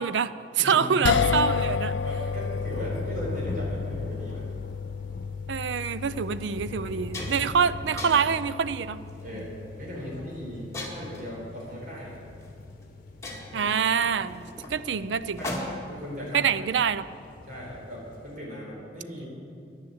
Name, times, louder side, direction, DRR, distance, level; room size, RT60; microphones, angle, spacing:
voice 1, 0.0-1.9 5.5-9.0 9.3-9.4 13.5-15.4 16.3-17.1, right 6 dB, 80° right, 15 dB, 0.4 m, -26 dB
voice 2, 0.6-1.1 2.0-4.5 6.9-7.0 9.2-12.2 13.5-13.7 15.4-15.6 15.9-16.5 17.4-19.3, equal, 50° right, -4 dB, 4.2 m, -38 dB
sound 1, 1.0-13.4, left 6 dB, 80° left, 0.4 m, -32 dB
sound 2, 1.0-18.4, left 1 dB, 50° left, 1.0 m, -44 dB
sound 3, 5.7-5.9 6.4-6.5 6.8-7.6 8.0-8.4 9.1-9.4 10.7-11.3 12.4-12.5 12.8-12.9 13.2-16.0, left 1 dB, 15° left, 1.9 m, -37 dB
11.0 x 10.5 x 8.0 m, 2.3 s
head